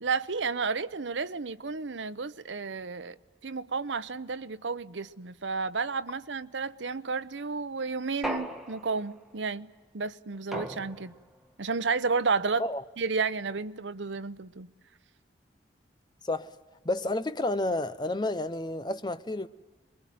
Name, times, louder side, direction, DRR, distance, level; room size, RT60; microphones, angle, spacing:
voice 1, 0.0-3.2 3.4-11.1 11.6-12.7 13.0-14.7, right 4 dB, 80° right, 0.9 m, -32 dB
sound 1, 8.2-9.2 10.5-11.3, equal, ahead, 1.7 m, -37 dB
voice 2, 16.8-19.5, left 2 dB, 25° left, 0.8 m, -30 dB
27.5 x 23.0 x 9.3 m
head